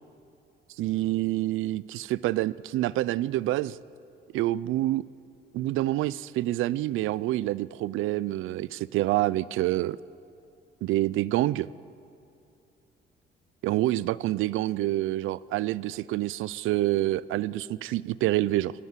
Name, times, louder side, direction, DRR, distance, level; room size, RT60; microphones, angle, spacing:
voice 1, 0.8-3.8 4.3-5.0 5.5-10.0 10.8-11.7 13.6-18.7, right 15 dB, 90° right, 20 dB, 0.5 m, -27 dB
27.5 x 18.0 x 7.5 m, 2.6 s
cardioid pair, 90°, 20 cm